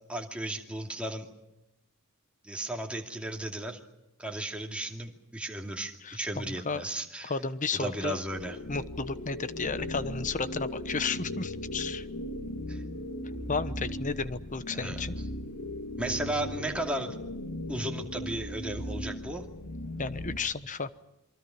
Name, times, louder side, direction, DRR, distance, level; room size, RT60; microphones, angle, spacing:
voice 1, 0.1-1.3 2.4-3.8 4.2-7.3 7.7-8.6 12.7-12.8 14.7-15.1 16.0-17.2 17.7-19.5, right 1 dB, 5° right, 1 dB, 2.6 m, -35 dB
voice 2, 6.0-6.8 7.2-8.2 8.7-12.1 13.5-15.1 20.0-21.0, left 4 dB, 35° left, 13 dB, 1.1 m, -33 dB
sound 1, 8.3-20.4, left 1 dB, 90° left, 2.7 m, -37 dB
27.5 x 24.0 x 6.0 m, 0.90 s
head